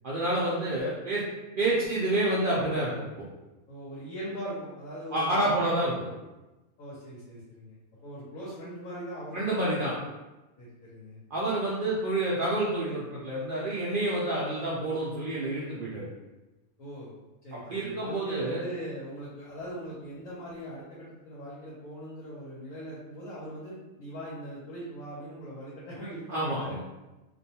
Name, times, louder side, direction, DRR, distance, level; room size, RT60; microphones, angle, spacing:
voice 1, 0.0-1.2 1.6-3.1 5.1-6.1 9.3-9.9 11.3-16.1 17.5-18.6 26.3-26.9, right 1 dB, 80° right, -7 dB, 0.4 m, -28 dB
voice 2, 3.7-5.6 6.8-7.7 8.0-9.4 10.6-11.2 16.8-17.1 17.4-26.8, equal, 75° left, -8 dB, 1.1 m, -40 dB
2.5 x 2.2 x 2.7 m, 1.1 s
omnidirectional pair, 1.5 m